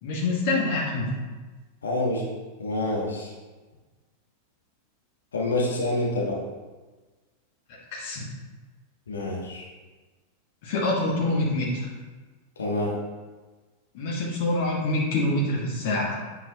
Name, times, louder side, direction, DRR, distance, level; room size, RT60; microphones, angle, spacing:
voice 1, 0.0-1.1 7.9-8.3 10.6-11.9 13.9-16.2, left 2 dB, 50° left, -4 dB, 1.3 m, -26 dB
voice 2, 1.8-2.2 2.6-3.3 5.3-6.4 9.1-9.6 12.6-12.9, left 2 dB, 70° left, -3 dB, 1.3 m, -27 dB
7.6 x 4.8 x 2.8 m, 1.3 s
figure-of-eight pair, 90°, 0 cm